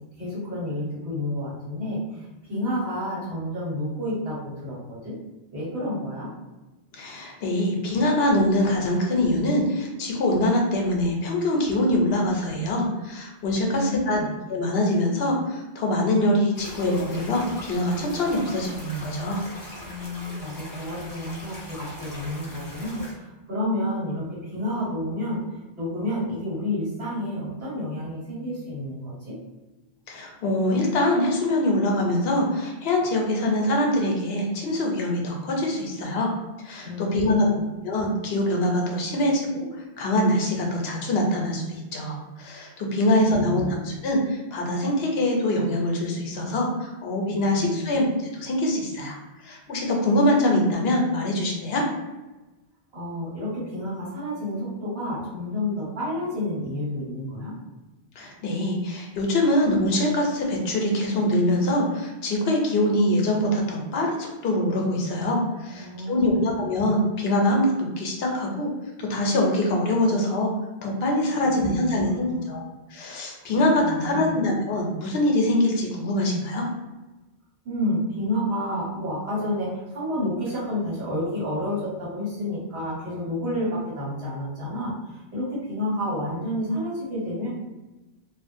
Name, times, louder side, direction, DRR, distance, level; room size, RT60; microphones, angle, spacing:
voice 1, 0.2-5.2 5.5-6.3 13.6-14.4 19.8-25.4 25.8-29.4 36.8-37.7 43.0-43.7 47.3-48.0 52.9-57.5 65.7-66.5 71.3-72.5 73.4-74.4 77.6-87.5, left 1 dB, 85° right, -7 dB, 1.4 m, -30 dB
voice 2, 6.9-14.2 14.5-19.4 30.1-36.3 36.6-37.5 37.8-39.7 40.0-48.1 48.4-51.8 58.2-68.7 69.0-70.5 70.8-72.6 72.9-76.7, left 1 dB, 75° left, 0 dB, 0.8 m, -24 dB
sound 1, 16.5-23.1, left 1 dB, 35° left, 0.3 m, -41 dB
2.4 x 2.1 x 2.5 m, 1.1 s
omnidirectional pair, 1.0 m